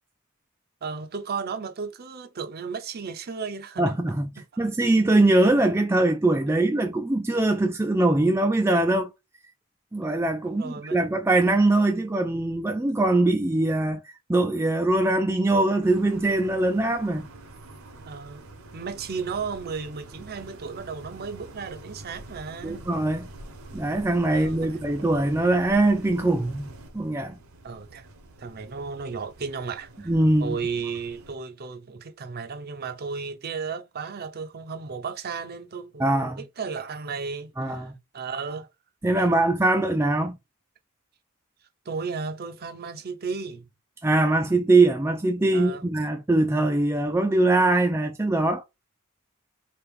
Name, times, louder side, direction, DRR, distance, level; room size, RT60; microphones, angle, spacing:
voice 1, 0.8-3.9 4.4-4.5 10.4-11.0 18.1-18.4 18.7-22.9 24.3-24.7 27.6-28.1 28.4-30.1 30.4-37.9 38.1-38.7 41.9-43.7 45.5-45.8, right 5 dB, 45° right, 0.6 m, -34 dB
voice 2, 3.8-4.3 4.6-9.1 9.9-17.3 22.6-23.3 23.7-26.7 26.9-27.4 30.1-30.6 36.0-36.4 37.6-37.9 39.0-40.4 44.0-48.6, right 2 dB, 10° right, 0.3 m, -22 dB
sound 1, 15.8-31.4, right 2 dB, 70° right, 0.9 m, -46 dB
3.4 x 2.9 x 4.7 m
head